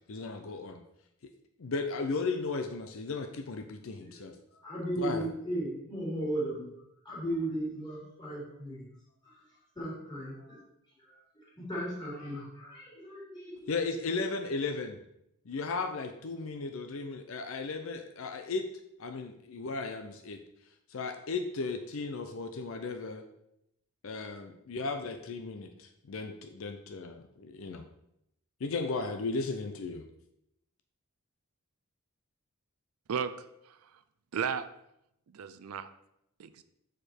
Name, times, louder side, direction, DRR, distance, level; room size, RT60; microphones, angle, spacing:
voice 1, 0.1-0.8 1.6-4.3 5.0-5.3 13.7-15.0 15.5-18.6 19.0-20.4 20.9-23.2 24.0-27.9 28.6-30.0, left 3 dB, 65° left, 6 dB, 0.5 m, -35 dB
voice 2, 4.0-6.8 7.0-8.9 9.2-9.4 9.7-10.6 11.0-13.6, right 1 dB, 20° left, -6 dB, 3.0 m, -36 dB
voice 3, 33.1-34.0 34.3-34.7 35.3-35.9 36.4-36.6, right 7 dB, 80° right, 12 dB, 0.4 m, -35 dB
6.6 x 5.0 x 4.4 m, 0.80 s
head